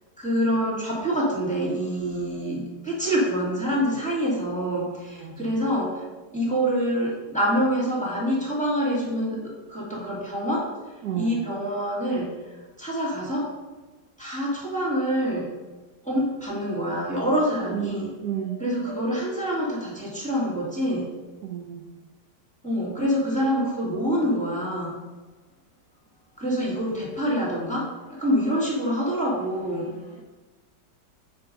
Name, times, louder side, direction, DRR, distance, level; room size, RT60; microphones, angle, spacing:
voice 1, 0.2-6.0 6.3-10.7 11.2-12.4 12.8-13.5 14.2-15.5 16.0-18.1 18.6-21.1 22.6-25.0 26.4-30.0, equal, 5° left, -5 dB, 1.9 m, -26 dB
voice 2, 5.2-5.5 11.0-11.4 17.6-18.6 21.4-21.9, right 9 dB, 70° right, 2 dB, 1.1 m, -32 dB
7.2 x 4.6 x 5.3 m, 1.2 s
omnidirectional pair, 1.9 m